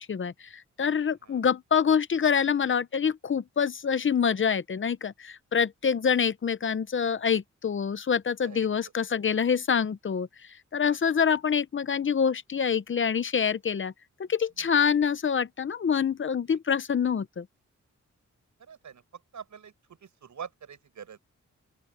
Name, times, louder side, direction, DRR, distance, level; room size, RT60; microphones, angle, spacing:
voice 1, 0.0-10.3 10.7-13.9 14.2-17.5, left 7 dB, 45° left, 0.7 m, -26 dB
voice 2, 18.6-21.2, right 7 dB, 80° right, 6.3 m, -45 dB
open air
wide cardioid pair, 150°, 29 cm